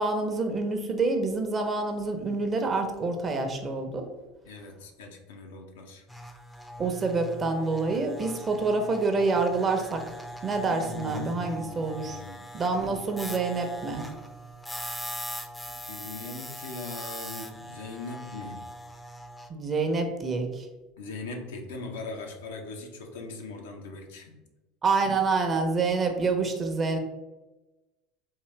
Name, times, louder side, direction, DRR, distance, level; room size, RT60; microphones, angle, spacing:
voice 1, 0.0-4.1 6.8-10.0 10.4-12.2 12.5-14.0 19.5-20.7 24.8-27.0, right 3 dB, 30° right, 5 dB, 0.7 m, -27 dB
voice 2, 4.5-6.0 10.7-12.4 15.7-18.6 21.0-24.4, left 3 dB, 85° left, 3 dB, 0.6 m, -40 dB
sound 1, 6.1-19.5, equal, 10° left, 0.5 m, -41 dB
3.7 x 2.6 x 3.2 m, 1.1 s
hypercardioid pair, 90°, 0 cm